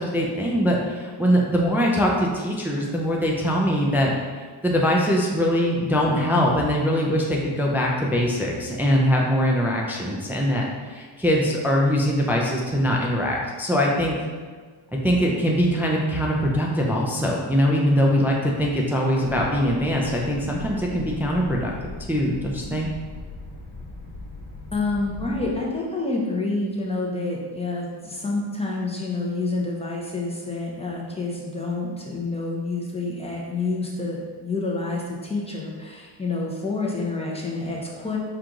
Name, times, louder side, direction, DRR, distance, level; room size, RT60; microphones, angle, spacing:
voice 1, 0.0-4.1 4.6-14.2 15.0-21.7 22.1-22.9, equal, 5° right, -2 dB, 0.3 m, -22 dB
sound 1, 19.2-25.6, left 2 dB, 50° left, 1.1 m, -39 dB
voice 2, 24.7-38.2, left 3 dB, 15° left, -3 dB, 0.7 m, -28 dB
4.5 x 2.5 x 3.7 m, 1.5 s
cardioid pair, 105°, 48 cm